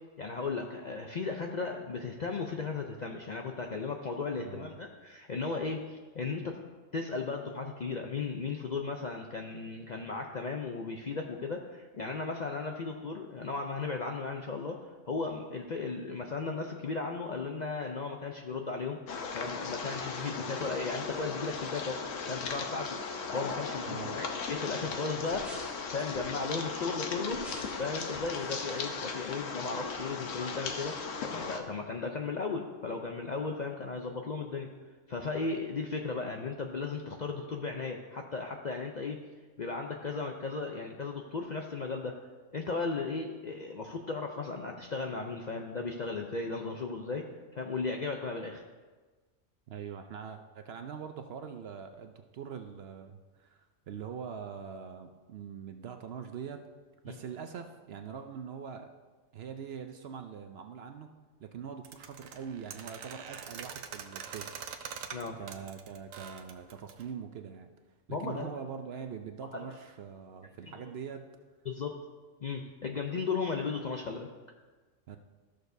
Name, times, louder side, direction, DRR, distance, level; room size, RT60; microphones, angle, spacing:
voice 1, 0.2-6.6 6.9-14.8 15.1-19.0 19.3-22.0 22.3-23.0 23.3-25.5 25.9-27.4 27.8-30.9 31.2-34.7 35.1-39.2 39.6-42.1 42.5-47.2 47.5-48.6 57.1-57.2 65.1-65.4 68.1-68.5 69.5-69.7 70.8-70.9 71.7-71.9 72.4-74.3, left 4 dB, 55° left, 2 dB, 0.5 m, -36 dB
voice 2, 4.4-4.7 23.9-24.2 49.7-56.6 57.0-58.9 59.3-61.1 61.4-64.5 65.3-67.7 68.1-71.2 75.1-75.2, right 7 dB, 60° right, 6 dB, 0.7 m, -43 dB
sound 1, 19.1-31.6, left 5 dB, 75° left, 1.1 m, -37 dB
sound 2, 25.2-26.4 27.2-29.7 30.0-30.1, equal, ahead, 1.2 m, -49 dB
sound 3, 61.8-67.1, right 7 dB, 85° right, 1.1 m, -44 dB
13.5 x 6.5 x 2.7 m, 1.3 s
omnidirectional pair, 1.4 m